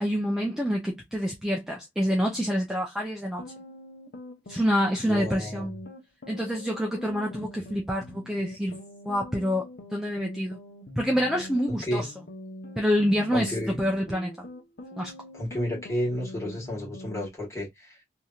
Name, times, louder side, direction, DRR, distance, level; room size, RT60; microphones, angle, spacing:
voice 1, 0.0-3.4 4.5-5.7 6.3-8.8 9.0-10.6 11.0-12.1 12.8-14.5 14.9-15.1, equal, 5° right, 0.5 m, -27 dB
sound 1, 3.4-17.3, left 1 dB, 65° left, 0.8 m, -44 dB
voice 2, 5.0-5.7 11.7-12.1 13.3-13.8 15.3-18.0, equal, 15° left, 1.7 m, -31 dB
3.1 x 2.7 x 2.3 m
head